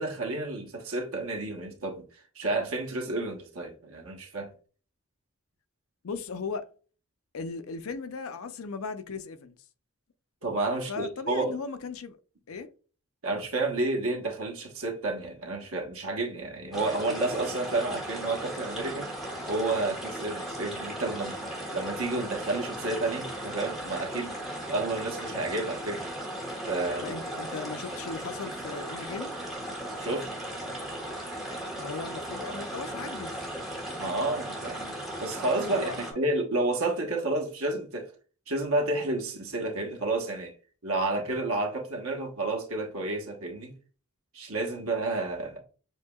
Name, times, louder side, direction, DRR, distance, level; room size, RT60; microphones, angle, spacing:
voice 1, 0.0-2.0 2.3-4.5 10.4-11.6 13.2-19.1 19.5-24.4 24.7-26.1 26.7-27.4 30.0-30.3 34.0-34.9 35.2-38.1 38.5-40.5 40.8-43.7 44.3-45.6, right 2 dB, 70° right, 1.2 m, -30 dB
voice 2, 6.0-6.7 7.3-9.6 10.9-12.2 12.5-12.7 27.0-29.3 31.8-33.5 35.7-36.0, left 4 dB, 65° left, 0.5 m, -37 dB
sound 1, 16.7-36.1, right 1 dB, ahead, 1.4 m, -37 dB
7.2 x 2.8 x 2.3 m
head